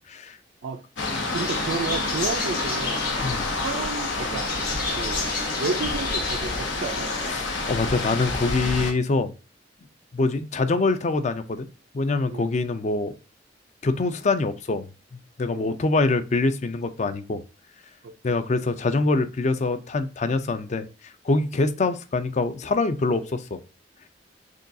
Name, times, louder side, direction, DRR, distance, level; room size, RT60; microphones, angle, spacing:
voice 1, 0.1-0.4 3.2-3.5 7.3-9.3 10.1-11.7 11.9-13.1 13.8-14.9 15.1-17.4 18.2-20.9 21.2-23.6, left 3 dB, 40° left, 0.4 m, -24 dB
sound 1, 1.0-8.9, left 3 dB, 90° left, 1.0 m, -29 dB
sound 2, 1.3-7.3, left 3 dB, 60° left, 1.9 m, -32 dB
voice 2, 1.3-3.0 3.6-4.5 5.0-5.3 5.6-7.1 12.3-12.5 15.5-15.6 18.0-18.1, right 4 dB, 70° right, 0.4 m, -31 dB
6.2 x 2.3 x 2.6 m
head